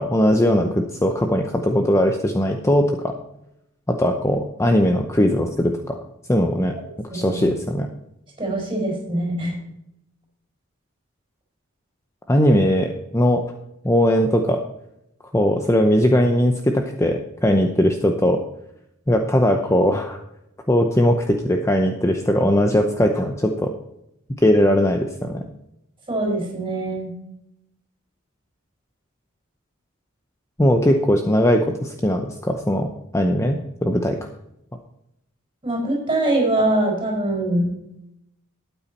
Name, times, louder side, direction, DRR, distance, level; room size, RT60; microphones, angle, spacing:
voice 1, 0.0-3.1 3.9-6.0 6.3-6.7 7.1-7.9 12.3-13.4 13.8-14.6 15.3-18.4 19.1-20.2 20.7-23.7 24.4-25.4 30.6-34.2, equal, 15° left, 4 dB, 0.7 m, -19 dB
voice 2, 7.1-7.4 8.4-9.6 26.1-27.1 35.6-37.7, right 1 dB, 20° right, -2 dB, 4.8 m, -23 dB
12.5 x 9.0 x 4.2 m, 0.82 s
head